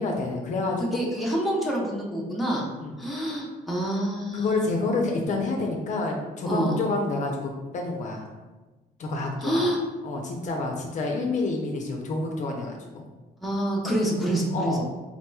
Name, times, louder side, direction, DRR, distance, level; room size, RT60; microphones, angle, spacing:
voice 1, 0.0-0.9 2.8-3.3 4.3-8.2 9.0-9.7 10.0-13.0 14.5-14.8, left 3 dB, 45° left, 0 dB, 0.5 m, -28 dB
voice 2, 0.8-2.7 3.0-4.8 6.4-6.8 9.4-9.8 13.4-14.8, right 1 dB, ahead, -4 dB, 0.7 m, -27 dB
4.0 x 2.9 x 2.3 m, 1.2 s
cardioid pair, 110°, 17 cm